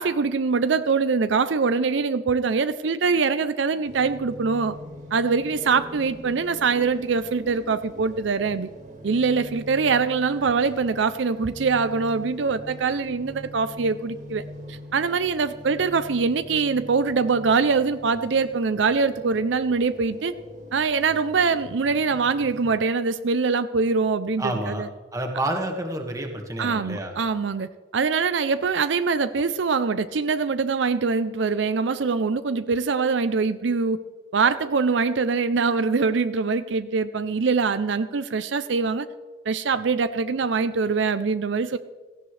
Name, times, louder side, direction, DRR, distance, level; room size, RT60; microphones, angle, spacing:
voice 1, 0.0-4.8 5.1-8.7 9.0-20.3 20.7-24.9 26.6-34.0 34.3-39.1 39.5-41.8, right 4 dB, 80° right, 12 dB, 0.5 m, -23 dB
sound 1, 3.8-22.7, equal, 40° right, 2.5 m, -42 dB
voice 2, 24.4-24.9 25.1-27.1, right 1 dB, 15° right, 3 dB, 1.7 m, -29 dB
17.0 x 15.0 x 3.3 m, 1.3 s
head